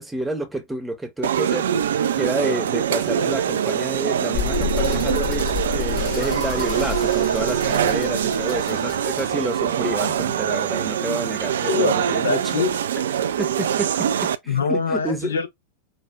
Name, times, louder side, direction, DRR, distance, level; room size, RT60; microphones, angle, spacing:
voice 1, 0.0-1.7 2.1-12.4 13.2-14.1 14.4-15.4, right 1 dB, 5° right, 0.9 m, -29 dB
sound 1, 1.2-14.4, right 9 dB, 65° right, 0.3 m, -23 dB
sound 2, 4.3-10.4, left 11 dB, 40° left, 1.7 m, -30 dB
voice 2, 11.7-12.7 14.5-15.5, left 5 dB, 70° left, 0.7 m, -24 dB
5.0 x 2.3 x 2.2 m
figure-of-eight pair, 90°, 0 cm